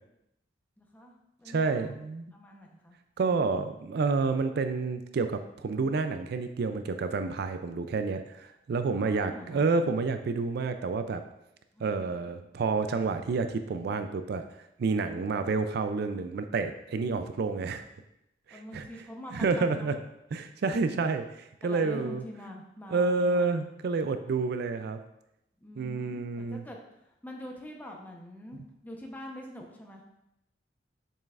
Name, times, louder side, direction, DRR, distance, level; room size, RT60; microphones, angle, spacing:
voice 1, 0.8-2.0 2.3-3.0 3.2-3.6 8.9-9.7 11.7-12.4 18.5-19.9 21.6-23.6 25.6-30.0, left 1 dB, 10° left, 0 dB, 0.8 m, -45 dB
voice 2, 1.5-2.3 3.2-11.2 11.8-14.4 14.8-17.8 18.5-18.9 19.3-19.9 20.3-22.2 22.9-25.0 25.8-26.6 28.5-28.6, right 4 dB, 60° right, 9 dB, 0.4 m, -29 dB
7.2 x 5.4 x 2.4 m, 0.83 s
head